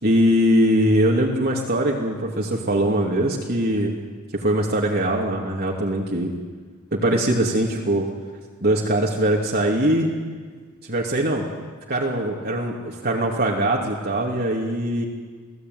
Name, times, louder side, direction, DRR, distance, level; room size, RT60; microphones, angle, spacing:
voice 1, 0.0-3.9 4.3-6.3 6.9-8.1 8.6-10.1 10.8-11.4 11.9-15.0, right 1 dB, 50° right, -2 dB, 2.7 m, -21 dB
29.5 x 18.0 x 9.5 m, 1.5 s
head